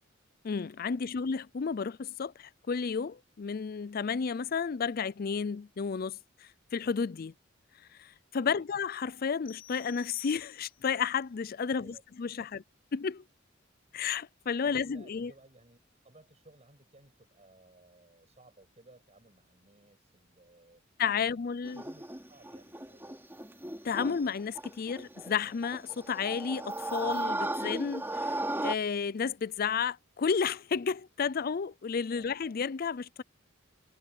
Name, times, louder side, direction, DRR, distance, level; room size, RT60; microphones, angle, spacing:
voice 1, 0.4-6.2 6.7-7.3 8.0-12.6 12.9-13.2 13.9-15.3 21.0-21.8 23.8-28.4 28.6-33.2, left 6 dB, 45° left, 0.4 m, -32 dB
sound 1, 9.5-11.0, left 15 dB, 85° left, 3.6 m, -51 dB
voice 2, 11.6-12.6 14.6-15.8 16.0-20.8 21.2-23.2 32.1-32.3, right 2 dB, 35° right, 7.6 m, -59 dB
sound 2, 21.6-28.7, right 2 dB, 10° right, 2.9 m, -36 dB
head